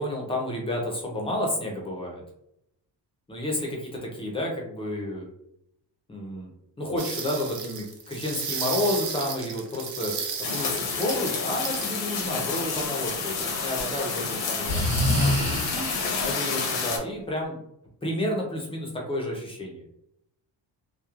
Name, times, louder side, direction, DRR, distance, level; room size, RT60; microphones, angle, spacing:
voice 1, 0.0-2.2 3.3-5.3 6.1-6.5 6.8-17.6 18.0-19.8, left 1 dB, 15° left, -1 dB, 0.4 m, -31 dB
sound 1, 7.0-11.9 13.7-14.2, right 6 dB, 50° right, 0.5 m, -34 dB
sound 2, 10.4-17.0, left 5 dB, 80° left, 0.7 m, -29 dB
Breathing, 12.6-13.8 14.7-16.2, left 1 dB, 25° right, 0.9 m, -27 dB
3.0 x 2.0 x 2.3 m, 0.80 s
wide cardioid pair, 165°, 44 cm